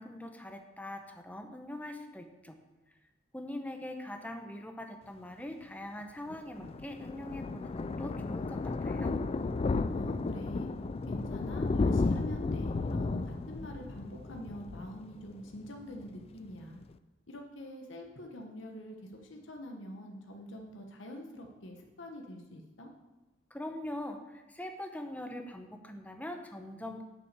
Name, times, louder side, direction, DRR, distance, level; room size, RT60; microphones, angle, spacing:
voice 1, 0.0-2.6 3.3-9.2 23.5-27.0, left 1 dB, 10° left, 5 dB, 0.8 m, -42 dB
Thunder, 6.3-15.7 16.0-16.2 16.5-16.6 16.8-16.9, left 3 dB, 30° left, 0.3 m, -33 dB
voice 2, 9.9-10.7 11.1-16.8 17.3-22.9, equal, 70° left, 2 dB, 1.1 m, -45 dB
8.0 x 5.9 x 6.7 m, 1.1 s
head